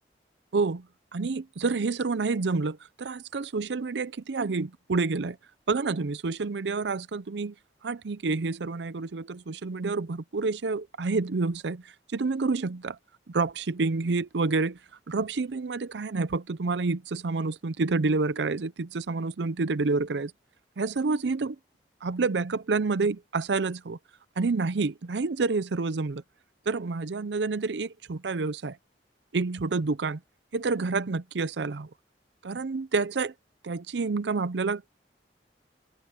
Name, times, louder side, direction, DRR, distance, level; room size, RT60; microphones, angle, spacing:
voice 1, 0.5-0.9 1.1-5.4 5.7-7.5 7.8-13.0 13.3-14.8 15.1-20.3 20.8-21.6 22.0-24.0 24.4-26.2 26.7-28.8 29.3-30.2 30.5-31.9 32.4-33.3 33.6-34.9, right 3 dB, 80° right, 0.6 m, -28 dB
head